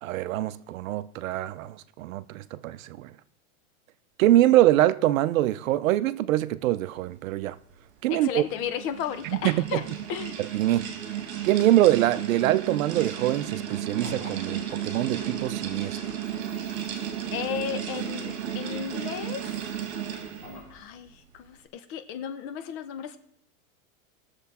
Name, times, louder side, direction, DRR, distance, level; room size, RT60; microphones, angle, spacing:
voice 1, 0.0-3.1 4.2-7.6 8.0-8.4 9.2-9.8 10.4-10.8 11.4-16.0, right 14 dB, 70° right, 0.7 m, -24 dB
voice 2, 8.1-9.8 10.1-10.4 17.3-19.5 20.7-23.2, left 9 dB, 35° left, 0.8 m, -34 dB
sound 1, 8.4-20.6, right 9 dB, 55° right, 2.0 m, -34 dB
sound 2, 13.9-20.8, equal, 5° left, 5.8 m, -49 dB
19.5 x 7.0 x 4.2 m
supercardioid pair, 155°, 41 cm